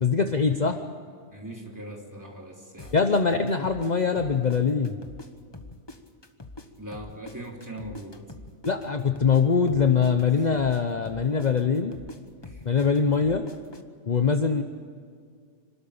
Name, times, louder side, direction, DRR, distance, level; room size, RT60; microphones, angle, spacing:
voice 1, 0.0-0.8 2.9-5.0 8.7-11.9 12.6-13.5 14.1-14.6, left 5 dB, 40° left, 6 dB, 0.9 m, -23 dB
voice 2, 1.3-3.1 6.8-8.2 10.3-10.5 12.4-12.6, right 1 dB, 15° right, -1 dB, 3.3 m, -40 dB
sound 1, 2.8-5.3 5.5-9.4 9.7-13.8, left 2 dB, 20° left, 1.2 m, -44 dB
27.0 x 13.0 x 8.8 m, 2.2 s
omnidirectional pair, 1.2 m